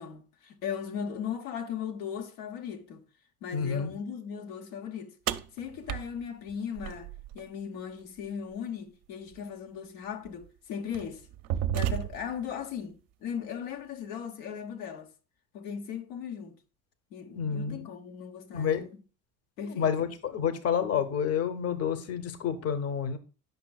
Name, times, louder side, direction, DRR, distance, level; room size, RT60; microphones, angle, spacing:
voice 1, 0.0-3.0 3.4-5.1 5.5-7.1 7.3-11.3 11.7-15.1 15.5-16.6 17.1-19.0 19.6-19.9, left 7 dB, 65° left, 1.0 m, -38 dB
voice 2, 3.5-3.9 17.3-17.8 18.5-18.8 19.7-23.2, left 7 dB, 35° left, 0.9 m, -29 dB
sound 1, 5.3-7.4 9.3-9.4 10.3-10.5 10.9-12.4, right 12 dB, 50° right, 0.6 m, -32 dB
9.3 x 5.9 x 2.3 m
hypercardioid pair, 65°, 43 cm